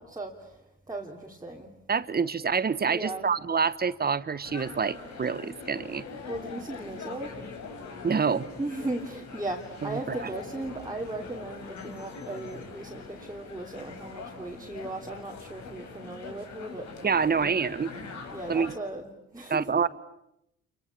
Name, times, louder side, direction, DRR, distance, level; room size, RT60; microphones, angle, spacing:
voice 1, 0.0-1.7 2.9-3.3 6.3-7.3 8.6-17.5 18.3-19.9, right 2 dB, 10° right, -1 dB, 2.9 m, -37 dB
voice 2, 1.9-6.0 8.0-8.5 9.8-10.2 17.0-17.9 18.5-18.7 19.5-19.9, right 6 dB, 30° right, 15 dB, 1.2 m, -27 dB
sound 1, 4.4-18.8, left 4 dB, 65° left, 5.1 m, -43 dB
28.0 x 23.5 x 8.6 m, 0.83 s
cardioid pair, 90°, 30 cm